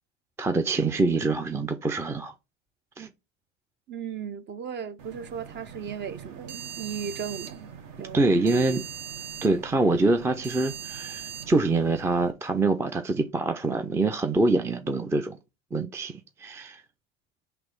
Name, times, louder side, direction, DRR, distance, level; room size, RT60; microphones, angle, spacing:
voice 1, 0.4-2.3 3.0-3.1 8.1-8.8 9.4-15.4 15.7-16.8, right 2 dB, 10° right, 0.5 m, -25 dB
voice 2, 3.9-7.7 8.0-8.8, right 7 dB, 30° right, 0.8 m, -36 dB
sound 1, 5.0-12.3, right 8 dB, 45° right, 1.5 m, -41 dB
5.9 x 3.3 x 5.2 m
hypercardioid pair, 95°, 36 cm